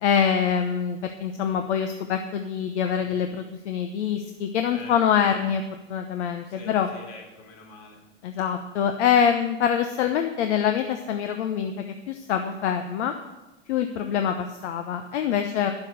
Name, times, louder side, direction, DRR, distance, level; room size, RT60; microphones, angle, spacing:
voice 1, 0.0-5.6 5.9-6.9 8.2-13.1 13.7-15.7, left 8 dB, 75° left, 6 dB, 1.0 m, -25 dB
voice 2, 4.7-5.5 6.4-8.0, left 4 dB, 55° left, 0 dB, 3.8 m, -46 dB
11.0 x 7.4 x 6.6 m, 1.0 s
supercardioid pair, 140°, 35 cm